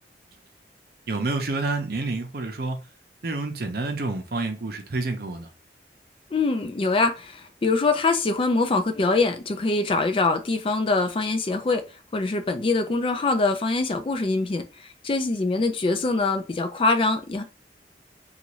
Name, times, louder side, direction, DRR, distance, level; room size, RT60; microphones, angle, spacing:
voice 1, 1.1-2.8 3.2-5.5, right 3 dB, 55° right, 0.6 m, -28 dB
voice 2, 6.3-11.8 12.1-17.4, left 3 dB, 30° left, 0.4 m, -24 dB
2.6 x 2.4 x 3.0 m
head